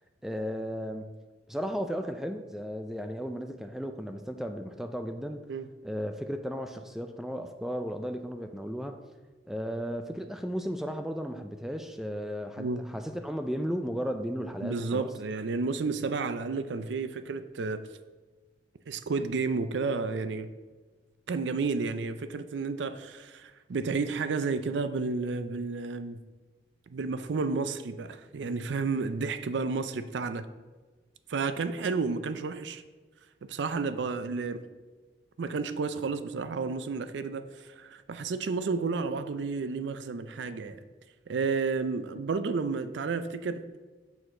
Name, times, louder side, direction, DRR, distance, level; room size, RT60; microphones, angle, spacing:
voice 1, 0.2-1.1 1.5-5.5 5.8-9.0 9.5-15.1, equal, ahead, 0.3 m, -35 dB
voice 2, 14.6-17.9 18.9-20.5 21.3-26.2 26.9-30.5 31.3-32.8 33.4-34.6 35.4-40.8 41.3-43.6, right 4 dB, 85° right, 0.4 m, -31 dB
7.0 x 6.4 x 3.7 m
head